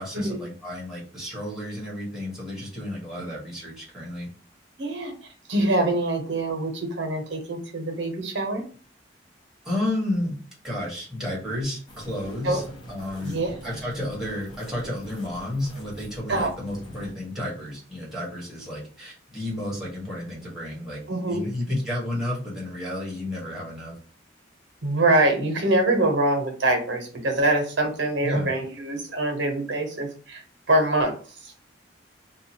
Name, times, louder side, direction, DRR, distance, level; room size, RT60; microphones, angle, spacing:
voice 1, 0.0-4.3 9.6-10.3 10.6-12.6 12.9-21.0 21.3-23.9 28.2-28.5, left 1 dB, 5° right, -5 dB, 1.2 m, -31 dB
voice 2, 4.8-5.1 5.5-8.6 12.4-12.6 13.2-13.7 16.3-16.5 21.1-21.4 24.8-31.1 31.4-31.5, right 2 dB, 75° right, 4 dB, 0.8 m, -24 dB
sound 1, 11.9-17.1, equal, 25° left, 0.8 m, -44 dB
2.8 x 2.4 x 2.8 m, 0.41 s
head